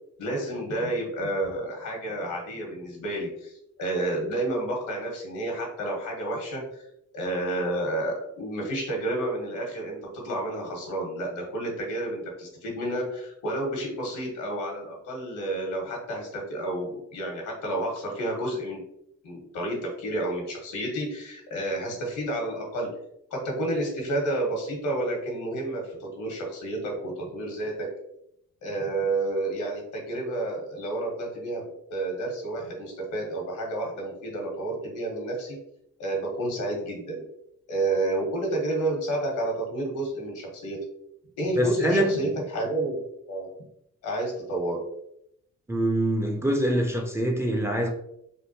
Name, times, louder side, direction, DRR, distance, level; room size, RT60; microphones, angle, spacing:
voice 1, 0.2-3.5 3.8-6.8 7.1-18.8 19.2-22.9 23.3-27.9 28.6-35.6 36.0-37.2 37.7-40.8 41.4-43.0 43.3-43.5 44.0-44.9, right 1 dB, 80° left, 1.2 m, -30 dB
voice 2, 41.6-42.3 45.7-47.9, right 1 dB, 10° right, 0.4 m, -25 dB
3.5 x 2.2 x 2.7 m
cardioid pair, 90°, 30 cm